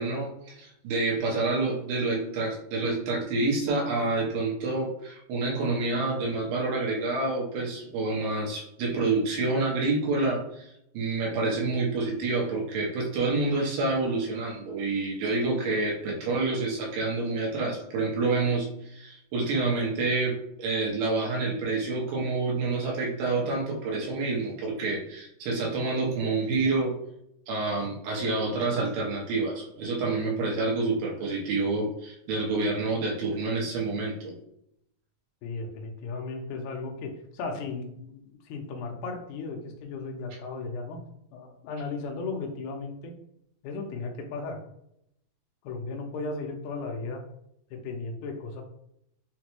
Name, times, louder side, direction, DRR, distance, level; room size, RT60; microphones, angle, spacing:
voice 1, 0.0-26.9 27.5-34.3, right 3 dB, 80° right, -2 dB, 2.6 m, -28 dB
voice 2, 35.4-41.0 41.3-43.1 43.6-44.6 45.6-47.2 47.7-48.6, left 3 dB, 80° left, 2 dB, 1.9 m, -35 dB
5.9 x 2.2 x 3.0 m, 0.77 s
omnidirectional pair, 3.9 m